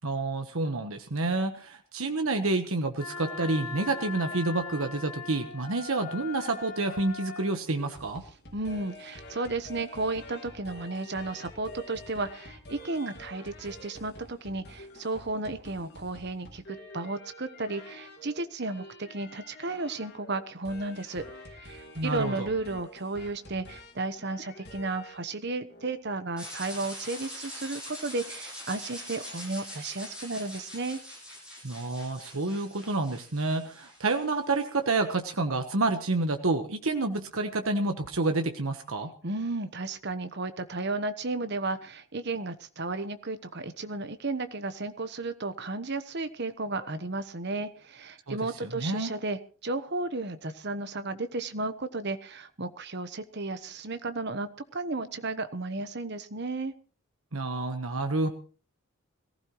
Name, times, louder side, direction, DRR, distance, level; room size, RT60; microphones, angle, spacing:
voice 1, 0.0-8.2 22.0-22.5 31.6-39.1 48.3-49.1 57.3-58.3, right 2 dB, 70° right, 6 dB, 1.2 m, -29 dB
Wind instrument woodwind instrument, 3.0-7.5, left 4 dB, 70° left, 2.8 m, -40 dB
sound 1, 7.8-25.3 25.7-26.0, left 1 dB, 45° left, 2.3 m, -48 dB
voice 2, 8.5-21.2 21.5-31.0 39.2-56.7, right 2 dB, 50° right, 11 dB, 1.1 m, -33 dB
sound 2, 26.4-34.4, equal, 5° right, 7.9 m, -43 dB
22.0 x 15.5 x 3.1 m, 0.39 s
head